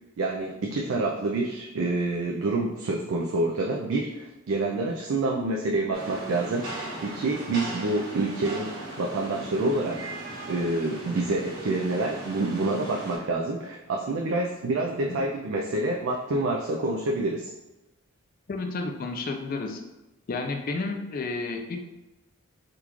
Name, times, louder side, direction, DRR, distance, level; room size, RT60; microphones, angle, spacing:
voice 1, 0.2-17.5, right 2 dB, 65° right, -1 dB, 0.4 m, -27 dB
Rain, 5.9-13.2, right 1 dB, 50° right, 1.2 m, -38 dB
voice 2, 18.5-19.8 20.3-21.8, left 3 dB, 40° left, 4 dB, 0.3 m, -31 dB
3.7 x 2.4 x 3.0 m, 0.99 s
head